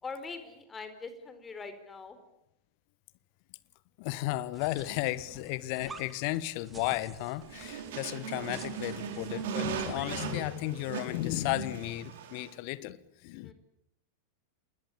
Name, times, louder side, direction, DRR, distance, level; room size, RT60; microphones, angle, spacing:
voice 1, 0.0-2.2 13.4-13.5, left 4 dB, 15° left, 9 dB, 4.4 m, -42 dB
voice 2, 4.0-13.5, left 17 dB, 45° left, 18 dB, 1.4 m, -34 dB
sound 1, 4.5-10.4, right 4 dB, 15° right, 2.5 m, -51 dB
sound 2, 7.4-12.5, right 7 dB, 55° right, 4.6 m, -38 dB
28.0 x 21.0 x 8.7 m, 0.85 s
figure-of-eight pair, 90°, 0 cm